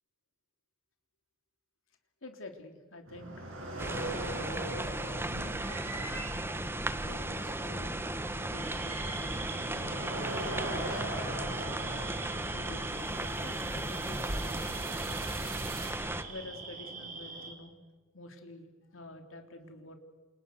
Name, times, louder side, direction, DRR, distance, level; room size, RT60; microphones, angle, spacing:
voice 1, 2.2-3.5 3.8-6.3 6.9-9.6 10.4-12.0 12.5-15.4 16.3-17.7 18.1-20.0, left 2 dB, 90° left, 5 dB, 3.3 m, -49 dB
sound 1, 3.1-15.9, right 2 dB, 75° right, 7.4 m, -42 dB
sound 2, 3.8-16.2, right 1 dB, 10° right, 1.3 m, -36 dB
sound 3, 8.5-17.5, right 4 dB, 40° right, 4.4 m, -44 dB
28.5 x 28.5 x 6.5 m, 1.3 s
head